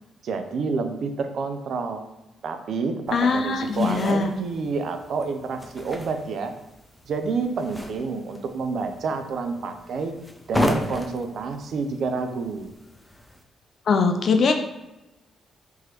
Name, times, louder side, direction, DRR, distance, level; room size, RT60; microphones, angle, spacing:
voice 1, 0.2-2.0 2.4-6.5 7.1-10.1 10.5-12.7, right 4 dB, 65° right, 7 dB, 0.4 m, -29 dB
voice 2, 3.1-4.3 13.9-14.5, left 4 dB, 60° left, 6 dB, 0.4 m, -21 dB
sound 1, 3.1-13.4, left 1 dB, 15° left, 0.6 m, -34 dB
3.6 x 3.1 x 2.9 m, 0.98 s
hypercardioid pair, 45°, 0 cm